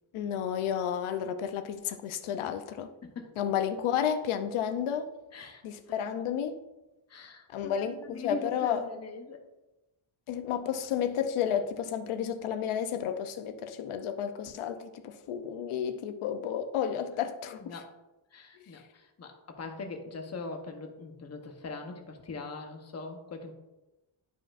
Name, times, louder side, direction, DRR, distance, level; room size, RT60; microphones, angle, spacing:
voice 1, 0.1-2.9 3.4-5.1 5.6-6.6 7.5-8.8 10.3-17.8, left 8 dB, 85° left, 0.7 m, -31 dB
voice 2, 5.3-5.6 7.1-9.4 17.6-17.9 18.3-23.5, left 3 dB, 30° left, 0.9 m, -41 dB
11.0 x 4.9 x 2.5 m
wide cardioid pair, 155°, 48 cm